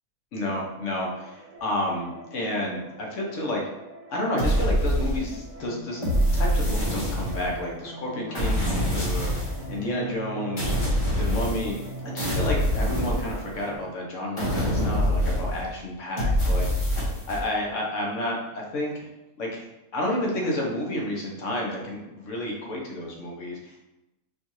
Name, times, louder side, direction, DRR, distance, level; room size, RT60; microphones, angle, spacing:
voice 1, 0.3-3.6 4.1-6.0 6.3-11.8 12.1-16.9 17.3-19.1 19.4-19.6 19.9-23.8, left 1 dB, 65° left, -2 dB, 1.1 m, -30 dB
sound 1, 0.8-13.8, right 1 dB, 65° right, 1.3 m, -41 dB
sound 2, 4.4-5.5 6.0-7.6 8.3-9.7 10.6-11.9 12.2-13.8 14.4-15.7 16.2-17.4, equal, 25° left, 0.8 m, -25 dB
4.5 x 2.5 x 2.9 m, 0.97 s
omnidirectional pair, 1.5 m